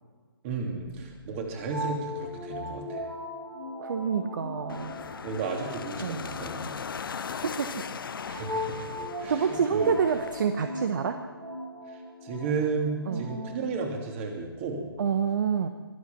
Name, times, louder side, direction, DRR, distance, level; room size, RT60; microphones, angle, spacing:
voice 1, 0.4-3.1 5.0-6.7 8.3-9.9 11.9-14.9, right 4 dB, 30° right, 1 dB, 3.1 m, -33 dB
sound 1, 0.7-13.7, equal, 85° right, 4.4 m, -39 dB
voice 2, 3.8-5.0 6.0-6.2 7.6-7.7 9.3-11.2 13.1-13.3 15.0-15.7, right 6 dB, 50° right, 8 dB, 1.0 m, -27 dB
sound 2, 4.7-10.4, left 6 dB, 60° left, 0.7 m, -38 dB
22.5 x 8.5 x 6.9 m, 1.4 s
figure-of-eight pair, 140°, 13 cm